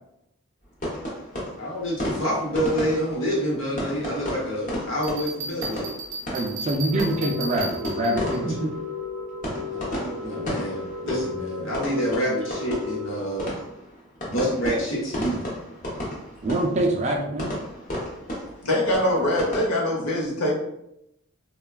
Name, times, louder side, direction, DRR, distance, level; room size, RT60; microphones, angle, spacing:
sound 1, 0.8-19.6, equal, 35° left, 0.7 m, -34 dB
voice 1, 1.6-5.9 8.4-8.7 9.7-13.5 14.2-15.4, equal, 60° left, -3 dB, 0.9 m, -27 dB
Bell, 5.0-8.4, right 3 dB, 55° right, 0.7 m, -35 dB
voice 2, 6.3-8.5 16.4-17.5, right 1 dB, 30° right, 1 dB, 0.3 m, -25 dB
sound 2, 6.9-13.1, left 5 dB, 5° right, 0.7 m, -34 dB
voice 3, 18.6-20.5, left 1 dB, 90° left, -2 dB, 0.8 m, -23 dB
3.2 x 2.2 x 2.3 m, 0.80 s
head